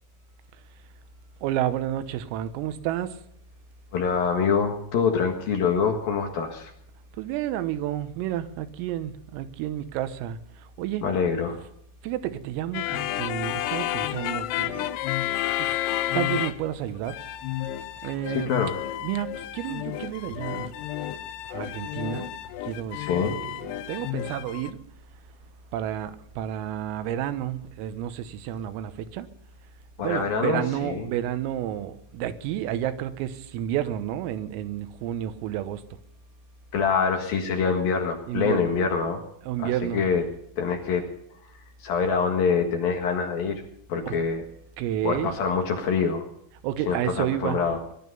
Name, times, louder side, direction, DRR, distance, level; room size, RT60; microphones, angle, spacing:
voice 1, 1.4-3.2 7.2-11.1 12.0-14.9 15.6-15.8 16.1-17.2 18.0-18.5 19.0-20.8 21.5-22.3 22.6-23.4 23.9-24.8 25.7-29.3 30.0-35.8 38.3-38.7 39.5-40.0 44.1-44.2 44.8-45.3 46.6-47.7, right 11 dB, 90° right, 3.7 m, -30 dB
voice 2, 3.9-6.7 11.0-11.6 18.3-18.8 22.9-23.4 30.0-31.1 36.7-39.2 39.6-40.2 40.6-41.1 41.8-43.6 43.9-44.4 45.0-46.2 46.9-47.8, left 5 dB, 60° left, 2.9 m, -25 dB
sound 1, 12.7-16.8 17.0-24.7, left 13 dB, 85° left, 2.3 m, -31 dB
21.0 x 12.5 x 5.4 m
omnidirectional pair, 5.8 m